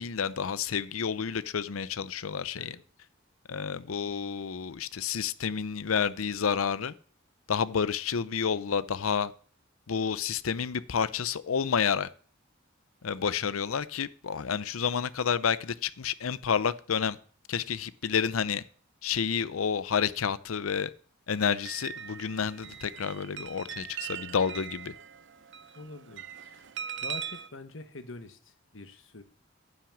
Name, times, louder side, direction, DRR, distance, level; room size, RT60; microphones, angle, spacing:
voice 1, 0.0-2.8 3.5-6.9 7.5-9.3 9.9-12.1 13.0-17.2 17.5-18.6 19.0-20.9 21.3-24.9, left 6 dB, 85° left, 0.6 m, -30 dB
sound 1, 21.3-27.5, right 8 dB, 60° right, 0.6 m, -41 dB
voice 2, 25.7-26.6 27.0-29.2, left 2 dB, 65° left, 1.2 m, -45 dB
9.8 x 6.0 x 7.4 m
head